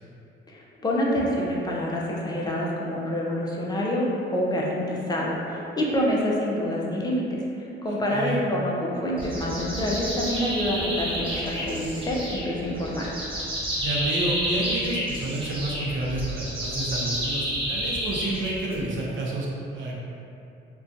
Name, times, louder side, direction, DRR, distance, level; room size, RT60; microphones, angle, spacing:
voice 1, 0.5-13.1, equal, 20° left, -3 dB, 0.4 m, -27 dB
voice 2, 7.8-8.4 13.8-20.0, right 2 dB, 70° right, -3 dB, 0.6 m, -30 dB
sound 1, 9.2-19.0, equal, 25° right, 0.8 m, -30 dB
2.5 x 2.2 x 2.4 m, 2.7 s
cardioid pair, 90°, 20 cm